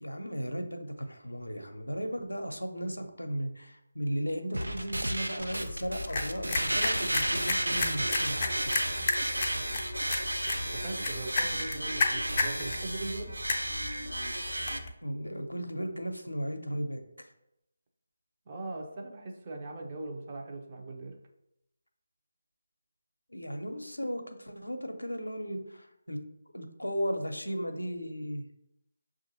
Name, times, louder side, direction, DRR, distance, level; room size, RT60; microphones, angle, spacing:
voice 1, 0.0-8.8 15.0-17.3 23.3-26.2 26.5-28.5, equal, 80° left, 5 dB, 0.5 m, -36 dB
sound 1, 4.5-14.8, right 1 dB, 75° right, 0.4 m, -33 dB
sound 2, 5.4-14.9, left 3 dB, 30° left, 0.4 m, -34 dB
voice 2, 10.7-13.3 18.5-21.2, right 2 dB, 30° right, 1 dB, 0.6 m, -40 dB
5.8 x 2.5 x 2.7 m, 0.81 s
figure-of-eight pair, 155°, 0 cm